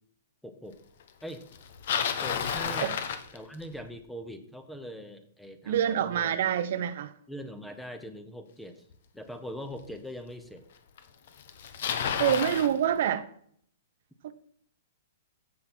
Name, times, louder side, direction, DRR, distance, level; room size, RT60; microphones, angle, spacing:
voice 1, 0.4-0.8 1.2-1.4 2.2-3.0 3.3-6.4 6.8-6.9 7.3-8.8 9.1-10.6, equal, 5° left, 0.9 m, -42 dB
Bicycle, 1.5-3.9 8.9-9.0 9.8-9.9 11.0-11.1 11.3-12.7, left 7 dB, 60° left, 1.1 m, -31 dB
voice 2, 5.6-7.1 12.2-13.3 14.2-14.3, right 10 dB, 60° right, 0.7 m, -26 dB
15.0 x 5.8 x 4.4 m
hypercardioid pair, 155°, 0 cm